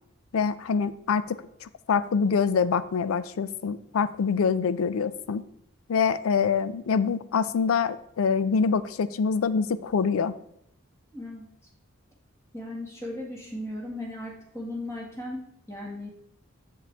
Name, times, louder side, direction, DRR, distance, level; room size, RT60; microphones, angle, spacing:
voice 1, 0.3-5.4 5.9-10.4, left 5 dB, 75° left, 15 dB, 0.4 m, -25 dB
voice 2, 11.1-11.5 12.5-16.1, left 1 dB, 15° left, -2 dB, 1.7 m, -37 dB
7.3 x 7.2 x 3.4 m, 0.74 s
head